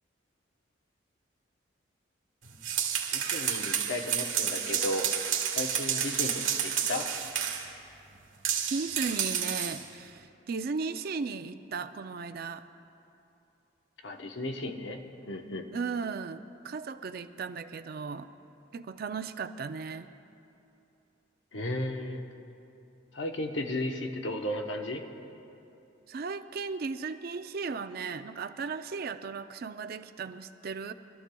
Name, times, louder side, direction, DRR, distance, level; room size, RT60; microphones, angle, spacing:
sound 1, 2.5-7.7 8.4-9.8, right 8 dB, 80° right, 1.4 m, -30 dB
voice 1, 3.1-5.1 5.5-7.1 14.0-15.0 15.3-15.7 21.5-22.2 23.1-25.0, left 1 dB, 75° left, 3 dB, 1.0 m, -34 dB
voice 2, 8.7-12.7 15.7-18.3 18.7-20.1 26.1-30.9, right 4 dB, 50° right, 10 dB, 0.4 m, -36 dB
24.5 x 13.0 x 2.3 m, 2.8 s
head